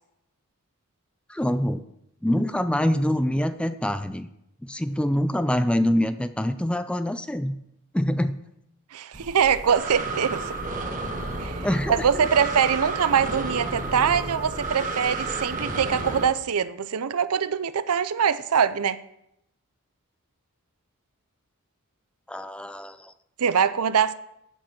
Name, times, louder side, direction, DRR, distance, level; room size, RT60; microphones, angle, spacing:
voice 1, 1.3-1.8 2.2-4.3 4.6-7.6 7.9-8.4 11.6-12.0 22.3-23.1, left 1 dB, 5° left, 0.4 m, -25 dB
voice 2, 8.9-10.6 11.4-19.0 23.4-24.1, right 7 dB, 75° right, 0.5 m, -23 dB
Breathing, 9.1-16.2, right 2 dB, 35° right, 1.3 m, -31 dB
8.9 x 7.4 x 5.9 m
head